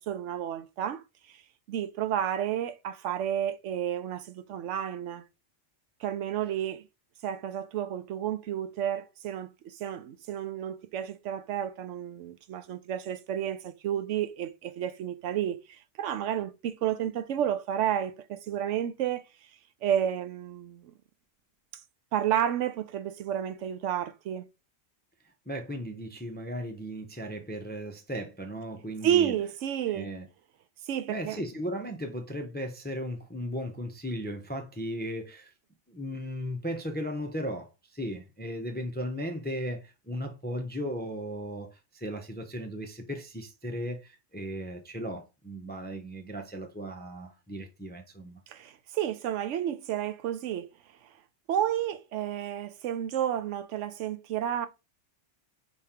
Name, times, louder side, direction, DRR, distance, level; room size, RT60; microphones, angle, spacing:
voice 1, 0.1-1.0 1.3-1.4 1.7-5.2 6.0-6.9 7.2-19.2 19.8-20.9 22.1-24.5 29.0-30.1 30.9-31.5 48.5-50.7 51.5-54.7, right 10 dB, 85° right, 0.9 m, -31 dB
voice 2, 25.5-29.3 29.9-30.3 31.1-35.5 35.9-48.4, equal, 15° left, 0.4 m, -36 dB
5.1 x 3.6 x 2.8 m
omnidirectional pair, 1.2 m